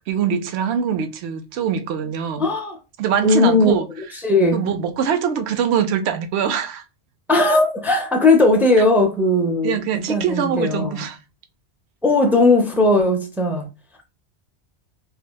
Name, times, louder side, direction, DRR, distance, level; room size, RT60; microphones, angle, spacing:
voice 1, 0.1-2.5 3.0-3.9 4.5-6.8 9.6-11.2, right 7 dB, 75° right, 0.8 m, -23 dB
voice 2, 2.4-2.8 3.2-3.8 4.2-4.6 7.3-9.8 10.1-11.0 12.0-13.7, left 2 dB, 5° right, 0.4 m, -17 dB
4.8 x 2.2 x 2.2 m
omnidirectional pair, 1.1 m